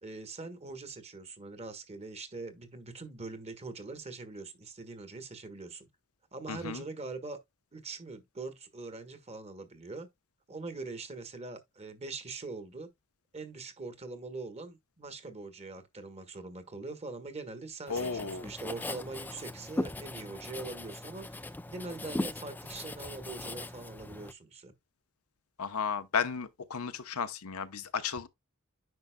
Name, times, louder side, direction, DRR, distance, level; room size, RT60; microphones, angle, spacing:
voice 1, 0.0-5.9 6.3-7.4 7.7-10.1 10.5-12.9 13.3-24.7, right 3 dB, 30° right, 1.3 m, -43 dB
voice 2, 6.5-6.8 17.9-18.4 25.6-28.3, left 6 dB, 85° left, 0.8 m, -34 dB
Writing, 17.9-24.3, left 2 dB, 10° left, 0.3 m, -39 dB
9.5 x 5.4 x 2.2 m
head